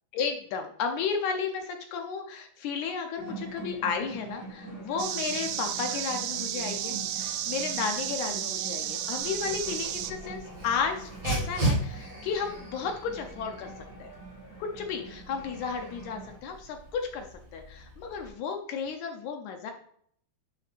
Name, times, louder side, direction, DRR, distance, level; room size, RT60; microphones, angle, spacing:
voice 1, 0.1-13.7 14.0-14.1 14.6-19.7, left 6 dB, 75° left, 4 dB, 2.0 m, -33 dB
sound 1, 3.2-16.4, right 3 dB, 20° left, 2.6 m, -44 dB
sound 2, 5.0-10.1, right 11 dB, 80° right, 1.7 m, -33 dB
Dog, 9.2-18.3, right 2 dB, 60° right, 4.9 m, -37 dB
10.5 x 6.4 x 2.5 m, 0.63 s
omnidirectional pair, 3.7 m